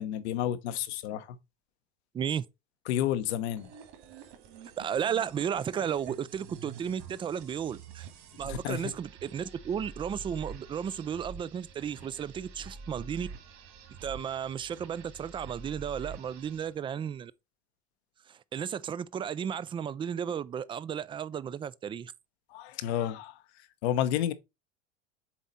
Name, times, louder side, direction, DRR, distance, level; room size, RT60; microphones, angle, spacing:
voice 1, 0.0-1.4 2.9-3.7 8.4-8.9 22.5-23.4 23.8-24.3, left 11 dB, 75° left, 1.0 m, -30 dB
voice 2, 2.1-2.4 4.8-8.1 8.4-13.3 14.0-17.3 18.3-22.1, right 8 dB, 15° right, 0.3 m, -34 dB
sound 1, 3.6-16.8, right 5 dB, 55° right, 2.4 m, -47 dB
7.4 x 4.1 x 4.1 m
supercardioid pair, 105°, 33 cm